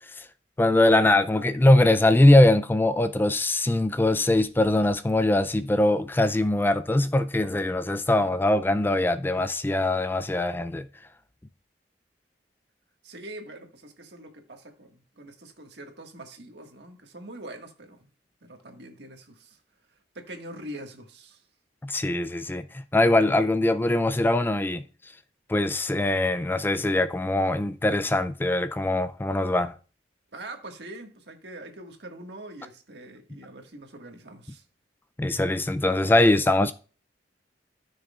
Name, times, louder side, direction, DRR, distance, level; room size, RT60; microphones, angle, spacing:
voice 1, 0.6-10.9 21.8-24.8 25.5-29.7 35.2-36.7, left 1 dB, 10° left, 0.3 m, -22 dB
voice 2, 13.0-18.1 18.4-19.6 19.9-21.4 30.3-34.6, right 1 dB, 70° right, 1.7 m, -43 dB
14.0 x 6.4 x 2.4 m
head